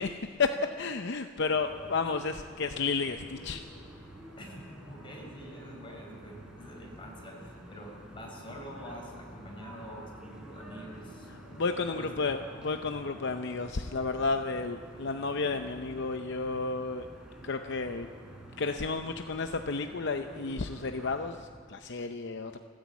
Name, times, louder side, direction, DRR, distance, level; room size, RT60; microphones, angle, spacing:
voice 1, 0.0-3.6 11.5-17.1 17.4-18.1 18.6-22.6, left 4 dB, 60° left, 7 dB, 0.7 m, -32 dB
sound 1, 1.5-21.3, right 1 dB, 5° right, 3.9 m, -49 dB
voice 2, 4.4-11.3 12.0-12.1, equal, 25° left, 0 dB, 5.0 m, -46 dB
29.5 x 10.5 x 8.4 m, 2.1 s
head